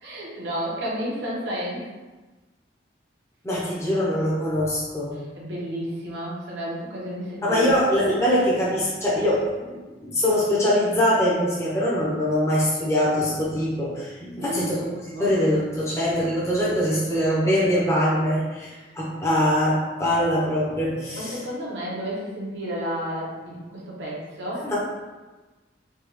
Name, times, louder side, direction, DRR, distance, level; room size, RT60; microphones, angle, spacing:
voice 1, 0.0-1.8 5.4-7.8 14.4-15.3 18.7-18.9 21.2-24.7, equal, 75° right, -5 dB, 1.0 m, -32 dB
voice 2, 3.4-5.2 7.4-14.8 15.2-21.4 24.6-24.8, equal, 15° left, -7 dB, 0.7 m, -23 dB
3.4 x 2.3 x 3.1 m, 1.2 s
head